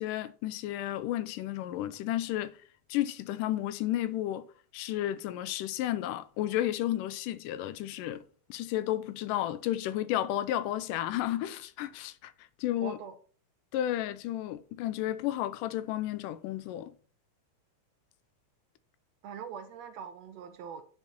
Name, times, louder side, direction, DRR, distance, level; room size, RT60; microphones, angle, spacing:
voice 1, 0.0-2.5 2.9-4.5 4.7-8.2 8.5-12.3 12.6-13.0 13.7-16.9, left 13 dB, 85° left, 2.2 m, -32 dB
voice 2, 12.7-13.2 19.2-20.8, right 7 dB, 80° right, 1.5 m, -42 dB
9.8 x 5.5 x 4.5 m
omnidirectional pair, 3.7 m